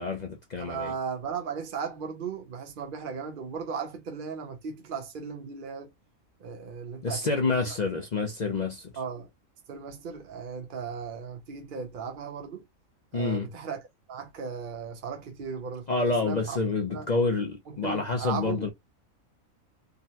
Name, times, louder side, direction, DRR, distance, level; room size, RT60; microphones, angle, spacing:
voice 1, 0.0-0.9 7.0-8.9 13.1-13.5 15.9-18.7, left 3 dB, 50° left, 0.5 m, -28 dB
voice 2, 0.6-5.9 6.4-7.8 9.0-9.3 9.7-12.6 13.1-13.8 14.1-16.6 16.9-17.1 17.7-18.7, right 6 dB, 55° right, 0.6 m, -36 dB
3.6 x 2.2 x 2.6 m
omnidirectional pair, 1.4 m